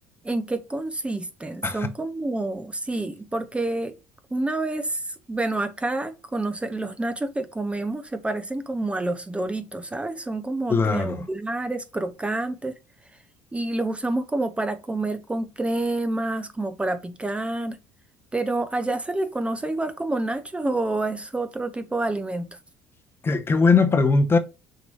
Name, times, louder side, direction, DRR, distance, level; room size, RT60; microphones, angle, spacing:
voice 1, 0.2-3.9 4.3-12.7 13.5-17.8 18.3-22.6, right 2 dB, 15° right, 0.7 m, -28 dB
voice 2, 10.7-11.2 23.2-24.4, left 4 dB, 30° left, 0.9 m, -20 dB
6.4 x 3.0 x 2.5 m
hypercardioid pair, 65°, 8 cm